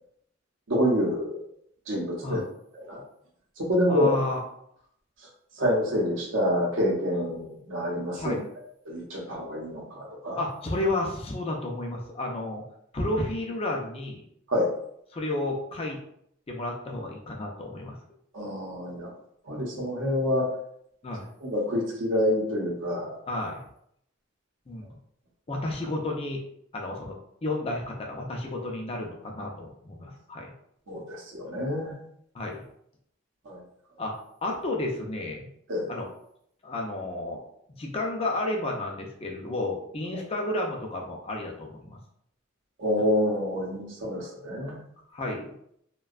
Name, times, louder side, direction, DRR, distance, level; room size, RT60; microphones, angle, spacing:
voice 1, 0.7-1.4 1.9-2.4 2.7-3.0 3.6-4.1 5.6-8.4 8.9-10.4 14.5-14.7 18.3-19.1 19.5-20.5 21.4-23.1 30.9-31.9 33.5-33.6 35.7-35.9 42.8-44.8, left 1 dB, 75° right, -2 dB, 0.7 m, -27 dB
voice 2, 3.9-4.4 8.2-8.4 10.3-12.6 12.9-14.2 15.1-16.0 16.5-18.0 21.0-21.3 23.3-23.6 24.7-24.9 25.5-26.4 26.7-30.5 32.3-32.6 34.0-34.1 34.4-35.5 35.9-36.1 36.6-37.4 37.8-42.0 45.1-45.5, left 2 dB, 30° left, 0 dB, 0.4 m, -31 dB
2.6 x 2.2 x 2.3 m, 0.72 s
head